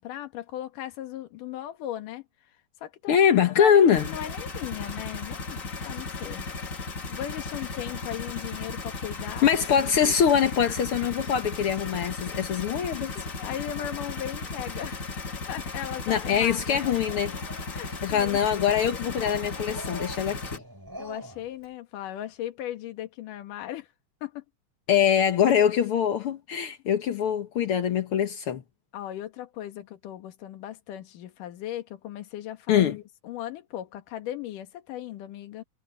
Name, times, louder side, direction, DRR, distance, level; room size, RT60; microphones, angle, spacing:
voice 1, 0.0-2.2 2.8-3.2 3.6-6.5 7.1-9.8 10.7-10.8 13.1-15.1 15.5-16.8 17.7-18.4 21.0-23.9 24.2-24.4 28.9-35.6, left 12 dB, 65° left, 3.0 m, -37 dB
voice 2, 3.1-4.1 9.4-13.1 16.1-17.3 18.0-20.6 24.9-28.6 32.7-33.0, left 8 dB, 85° left, 1.2 m, -23 dB
sound 1, 3.9-20.6, left 3 dB, 45° left, 1.1 m, -36 dB
Dog, 16.8-18.3 19.1-21.5, equal, 5° right, 5.1 m, -43 dB
omnidirectional pair, 4.3 m